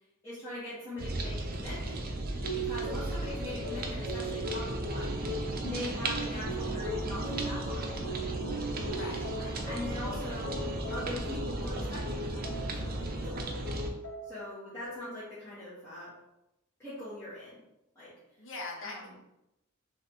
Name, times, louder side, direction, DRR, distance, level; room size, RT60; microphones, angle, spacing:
voice 1, 0.2-2.0 2.5-5.1 5.6-7.9 8.9-9.1 9.6-13.4 14.2-16.1 16.8-17.6 17.9-18.1 18.8-19.1, left 1 dB, 15° left, -13 dB, 1.5 m, -42 dB
sound 1, 1.0-13.9, right 2 dB, 45° right, 0.6 m, -35 dB
sound 2, 2.4-12.9 13.2-14.5 14.8-15.4, right 1 dB, 80° left, 1.3 m, -40 dB
voice 2, 8.9-9.6 18.4-19.2, left 3 dB, 65° left, 0 dB, 1.0 m, -42 dB
3.3 x 3.1 x 4.2 m, 0.87 s
head